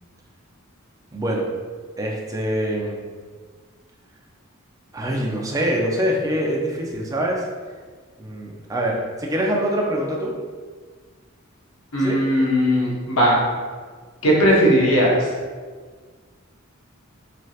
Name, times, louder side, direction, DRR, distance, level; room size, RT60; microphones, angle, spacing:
voice 1, 1.1-1.5 2.0-3.0 4.9-7.4 8.2-10.3 12.0-12.2, equal, 15° right, -2 dB, 0.4 m, -24 dB
voice 2, 11.9-13.4 14.2-15.2, equal, 85° left, -4 dB, 0.8 m, -18 dB
3.2 x 2.8 x 2.3 m, 1.5 s
head